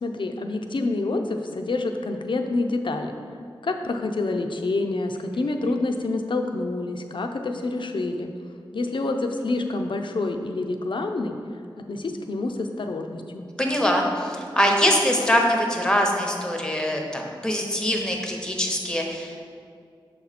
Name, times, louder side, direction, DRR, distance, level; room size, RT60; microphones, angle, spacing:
voice 1, 0.0-3.1 3.6-8.3 8.7-11.4 11.8-13.5, left 2 dB, 65° left, 5 dB, 0.5 m, -27 dB
voice 2, 13.6-19.5, equal, 10° left, 1 dB, 0.8 m, -23 dB
6.7 x 4.2 x 4.1 m, 2.3 s
wide cardioid pair, 85°, 9 cm